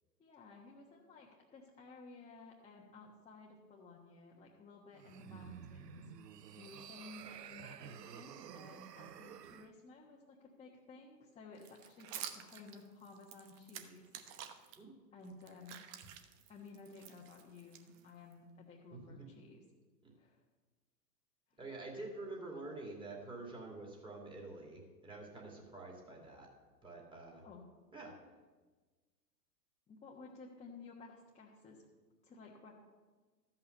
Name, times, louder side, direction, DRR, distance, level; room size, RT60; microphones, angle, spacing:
voice 1, 0.2-14.1 15.1-15.8 16.5-19.6 20.2-20.4 21.5-21.6 27.3-27.6 29.9-31.8 32.2-32.7, left 3 dB, 15° left, -4 dB, 1.3 m, -55 dB
sound 1, 4.9-9.7, right 9 dB, 75° right, 0.8 m, -51 dB
sound 2, 11.6-14.8 15.2-18.3, right 10 dB, 35° right, 1.0 m, -50 dB
voice 2, 18.9-19.3 20.0-20.1 21.6-26.5 26.8-27.4 27.9-28.1, right 2 dB, 10° right, -2 dB, 2.5 m, -47 dB
13.5 x 5.7 x 6.6 m, 1.3 s
hypercardioid pair, 115°, 50 cm